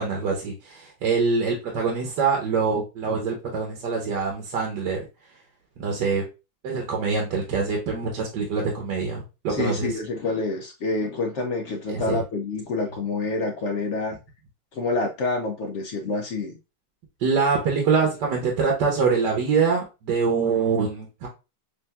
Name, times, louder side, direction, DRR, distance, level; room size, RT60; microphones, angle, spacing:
voice 1, 0.0-5.0 5.8-6.2 6.6-9.9 11.9-12.2 17.2-21.3, right 5 dB, 75° right, 1.5 m, -24 dB
voice 2, 9.5-14.2 14.7-16.6, left 3 dB, 75° left, 0.6 m, -27 dB
6.5 x 2.5 x 2.3 m
omnidirectional pair, 1.9 m